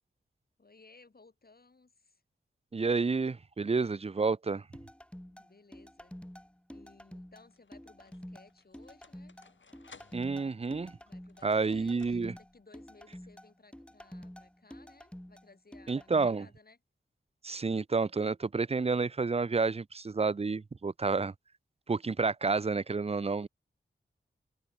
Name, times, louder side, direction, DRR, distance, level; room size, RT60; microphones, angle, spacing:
voice 1, 0.6-2.2 5.2-6.2 6.7-9.3 11.0-16.8, left 3 dB, 50° left, 7.8 m, -60 dB
voice 2, 2.7-4.6 10.1-10.9 11.4-12.3 15.9-16.5 17.4-21.3 21.9-23.5, right 4 dB, 30° right, 0.6 m, -30 dB
sound 1, 4.7-16.3, equal, 5° left, 3.5 m, -49 dB
sound 2, 5.8-6.3 7.1-12.6, left 4 dB, 70° left, 6.7 m, -60 dB
wide cardioid pair, 65°, 20 cm